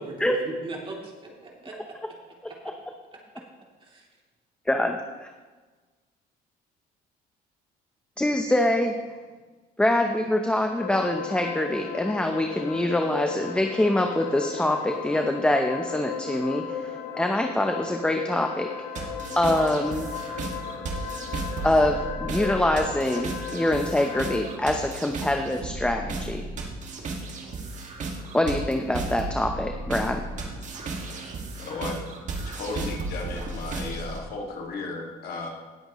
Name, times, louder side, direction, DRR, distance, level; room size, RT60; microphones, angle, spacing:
voice 1, 0.0-1.9 2.5-2.6 3.8-4.0, right 2 dB, 30° right, -2 dB, 2.9 m, -38 dB
voice 2, 4.7-5.3 8.2-9.0 9.8-20.1 21.6-26.4 28.3-30.2, left 1 dB, 5° left, 4 dB, 0.7 m, -25 dB
sound 1, 10.8-24.5, left 7 dB, 80° left, 1.3 m, -36 dB
sound 2, 19.0-34.2, right 3 dB, 45° right, 1.9 m, -34 dB
voice 3, 31.6-32.0 32.4-35.5, left 3 dB, 65° left, 0 dB, 2.1 m, -34 dB
18.0 x 8.0 x 3.1 m, 1.3 s
cardioid pair, 110°, 17 cm